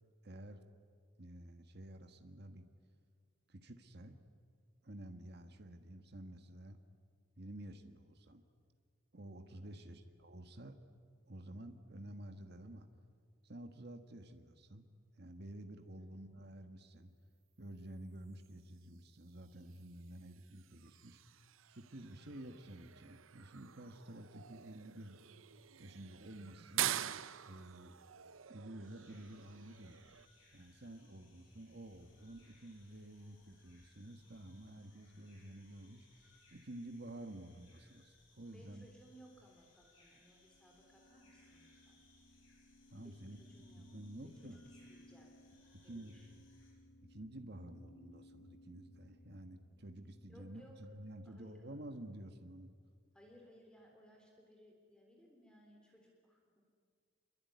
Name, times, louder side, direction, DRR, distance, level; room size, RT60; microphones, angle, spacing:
voice 1, 0.2-0.6 1.2-2.7 3.5-4.2 4.8-6.8 7.4-8.4 9.1-10.8 11.3-12.9 13.4-14.9 15.2-17.1 17.6-21.2 21.7-25.2 25.8-26.9 27.4-28.0 28.5-30.0 30.5-38.8 42.9-44.7 45.7-46.2 47.1-52.7, right 1 dB, 55° right, 7 dB, 1.5 m, -51 dB
voice 2, 16.0-16.3 31.2-31.5 38.5-42.0 43.0-43.9 44.2-45.4 45.8-46.4 50.3-50.8 51.3-51.8 53.1-56.6, equal, 5° left, 0 dB, 3.6 m, -63 dB
sound 1, 18.3-30.3, right 11 dB, 85° right, 0.7 m, -46 dB
sound 2, 28.8-46.7, left 2 dB, 70° left, 7.6 m, -69 dB
sound 3, 40.4-50.5, left 1 dB, 35° left, 0.7 m, -62 dB
26.5 x 23.5 x 9.5 m, 2.1 s
head